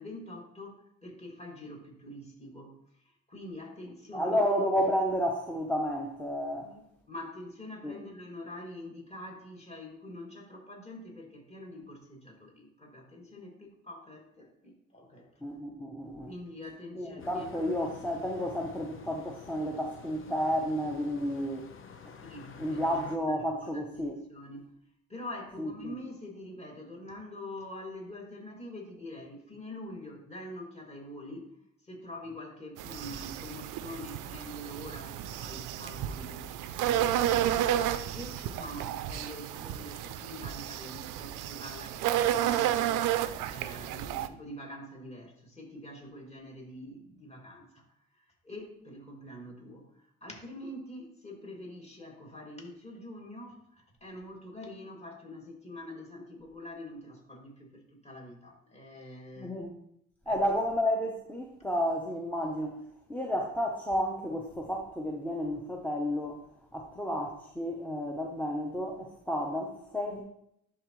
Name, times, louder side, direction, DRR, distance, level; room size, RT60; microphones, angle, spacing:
voice 1, 0.0-4.4 6.6-15.3 16.3-17.8 22.2-23.0 23.3-24.7 25.1-31.5 31.8-37.8 38.1-43.1 43.5-47.8 48.1-59.6 60.3-60.5, left 1 dB, 20° left, -1 dB, 2.3 m, -45 dB
voice 2, 4.1-6.7 7.8-7.9 15.4-16.3 17.0-21.6 22.6-24.1 25.6-25.9 59.4-59.7 60.3-62.7 63.1-66.4 66.7-70.2, equal, 5° left, 0 dB, 0.8 m, -31 dB
sound 1, 17.2-23.2, left 6 dB, 45° left, 0.8 m, -49 dB
sound 2, 32.8-44.3, right 12 dB, 90° right, 0.5 m, -31 dB
11.0 x 3.8 x 3.1 m, 0.74 s
cardioid pair, 90°, 30 cm